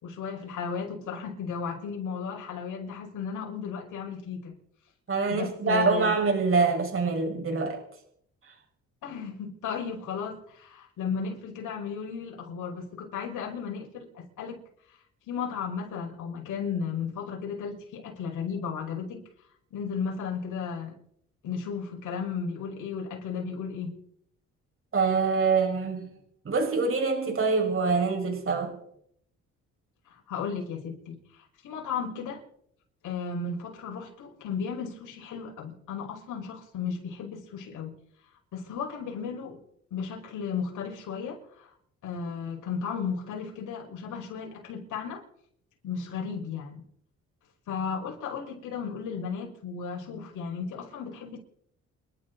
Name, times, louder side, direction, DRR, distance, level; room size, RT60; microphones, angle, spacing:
voice 1, 0.0-4.5 5.3-6.1 9.0-14.6 15.3-19.2 19.7-21.0 21.4-24.0 30.1-32.4 33.0-38.0 38.5-39.6 39.9-41.7 42.0-45.2 45.8-46.8 47.7-51.4, left 6 dB, 80° left, 0 dB, 5.5 m, -34 dB
voice 2, 5.1-7.8 8.5-8.6 24.9-26.1 26.4-28.8, right 4 dB, 45° right, 1 dB, 6.0 m, -25 dB
29.0 x 12.0 x 4.1 m, 0.69 s
cardioid pair, 90°, 30 cm